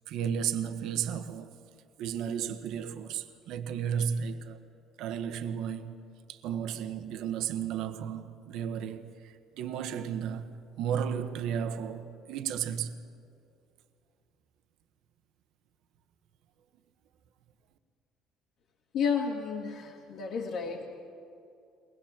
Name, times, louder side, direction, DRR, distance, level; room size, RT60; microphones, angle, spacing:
voice 1, 0.1-1.5 2.0-4.6 5.0-6.0 6.3-12.9, right 8 dB, 65° right, 1.2 m, -33 dB
voice 2, 18.9-21.0, left 6 dB, 55° left, 2.1 m, -32 dB
23.0 x 19.5 x 7.4 m
cardioid pair, 155°, 0 cm